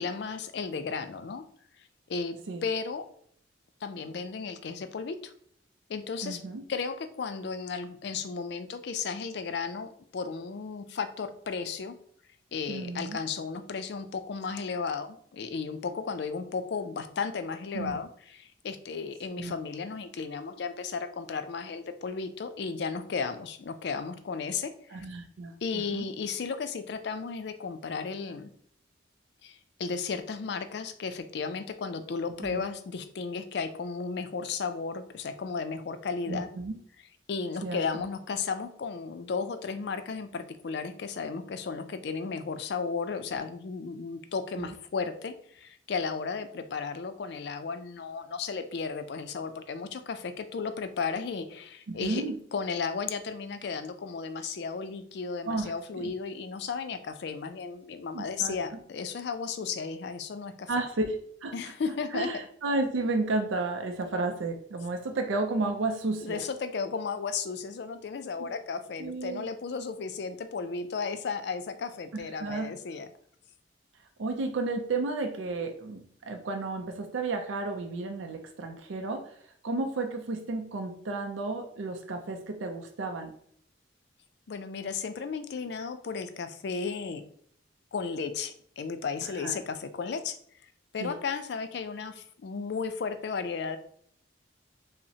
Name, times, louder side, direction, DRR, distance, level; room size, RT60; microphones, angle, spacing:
voice 1, 0.0-1.4 2.1-3.1 3.8-5.3 5.9-6.4 6.7-12.0 12.5-25.1 25.6-28.5 29.4-36.5 37.3-60.7 61.5-62.3 66.2-73.1 84.5-87.2 87.9-90.4 90.9-93.8, left 5 dB, 60° left, 10 dB, 0.4 m, -34 dB
voice 2, 6.2-6.6 12.7-13.2 17.7-18.0 19.4-19.6 24.9-26.1 32.4-32.6 36.3-36.7 37.6-38.0 44.6-44.7 51.9-52.4 55.5-56.1 58.1-58.5 60.7-61.2 61.4-61.5 62.1-66.4 68.4-68.5 69.0-69.5 72.1-72.7 74.2-79.3 79.6-83.3 89.4-89.5 91.0-91.1, right 3 dB, 90° right, 4 dB, 0.4 m, -32 dB
5.5 x 2.0 x 2.7 m, 0.63 s
head